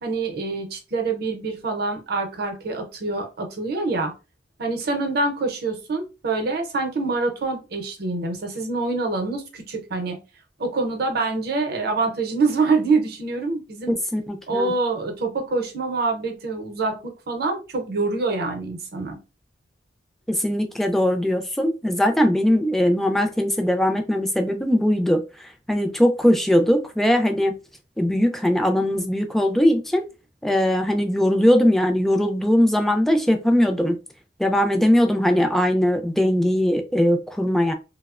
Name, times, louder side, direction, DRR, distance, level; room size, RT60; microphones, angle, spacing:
voice 1, 0.0-4.1 4.6-10.2 10.6-13.9 14.5-19.2, right 3 dB, 60° right, 4 dB, 0.6 m, -25 dB
voice 2, 13.9-14.7 20.3-27.5 28.0-30.0 30.4-34.0 34.4-37.7, equal, ahead, 4 dB, 0.3 m, -20 dB
2.7 x 2.0 x 2.4 m, 0.29 s
head